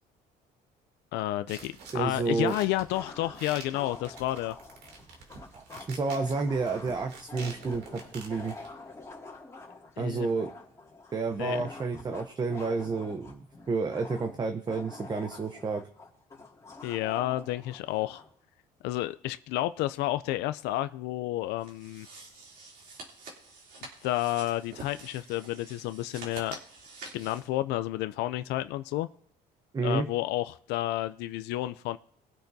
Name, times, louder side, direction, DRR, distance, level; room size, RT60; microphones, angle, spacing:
voice 1, 1.1-4.6 10.0-10.3 11.4-11.6 16.8-18.2 18.8-22.1 24.0-26.6 27.1-29.1 29.8-32.0, left 15 dB, 90° left, 0.4 m, -31 dB
sound 1, 1.5-8.7, right 4 dB, 75° right, 2.8 m, -48 dB
voice 2, 1.9-2.5 5.5-8.6 10.0-10.5 11.1-15.8 29.7-30.0, right 4 dB, 25° right, 0.8 m, -30 dB
sound 2, 2.9-18.3, left 3 dB, 15° left, 2.2 m, -47 dB
sound 3, 21.6-27.5, right 3 dB, 60° right, 3.0 m, -47 dB
20.5 x 8.7 x 2.7 m
cardioid pair, 110°, 17 cm